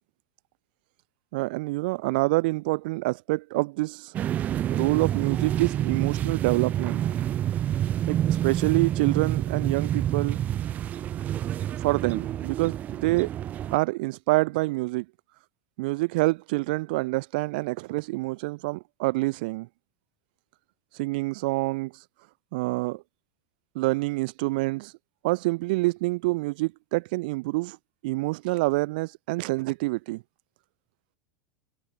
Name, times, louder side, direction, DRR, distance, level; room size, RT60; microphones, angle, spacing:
voice 1, 1.3-4.1 4.7-7.1 8.1-10.4 11.8-13.3 13.7-15.0 15.8-19.7 20.9-21.9 22.5-23.0 23.7-24.9 25.2-27.8 28.0-30.2, right 23 dB, 65° right, 1.3 m, -27 dB
sound 1, 4.1-13.8, right 11 dB, 30° right, 0.4 m, -28 dB
supercardioid pair, 130°, 5 cm